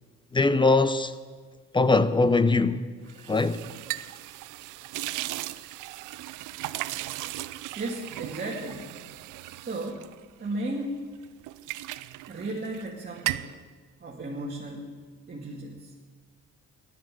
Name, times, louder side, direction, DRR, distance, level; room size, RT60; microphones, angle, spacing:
voice 1, 0.3-1.1 1.7-2.9 3.3-3.6, left 3 dB, 15° left, 0.7 m, -21 dB
sound 1, 3.1-10.9 11.2-12.9 13.1-13.6, right 16 dB, 90° right, 0.5 m, -37 dB
voice 2, 7.8-9.0 9.6-10.1 10.4-11.0 12.3-13.6 14.0-15.0 15.3-15.9, right 2 dB, 30° right, 2.4 m, -35 dB
15.0 x 11.5 x 7.7 m
cardioid pair, 90°, 30 cm